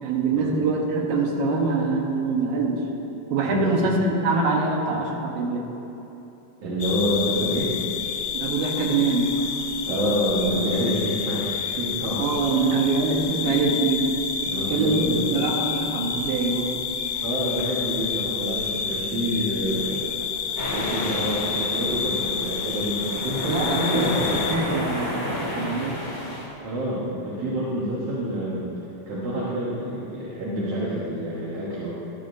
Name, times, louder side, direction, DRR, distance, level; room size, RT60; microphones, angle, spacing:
voice 1, 0.0-2.8 3.3-5.7 8.3-9.4 12.2-14.2 14.7-16.8 23.4-26.0, right 3 dB, 75° right, 0 dB, 2.8 m, -24 dB
voice 2, 3.5-3.9 6.6-7.7 9.9-12.2 12.5-12.6 14.4-15.3 17.2-20.1 20.7-24.4 26.6-28.6 29.1-31.9, right 1 dB, 55° right, -8 dB, 1.8 m, -27 dB
sound 1, 6.8-24.6, left 7 dB, 85° left, 1.9 m, -29 dB
sound 2, 20.6-26.5, left 1 dB, 25° left, 0.9 m, -31 dB
13.5 x 12.0 x 2.7 m, 3.0 s
omnidirectional pair, 4.3 m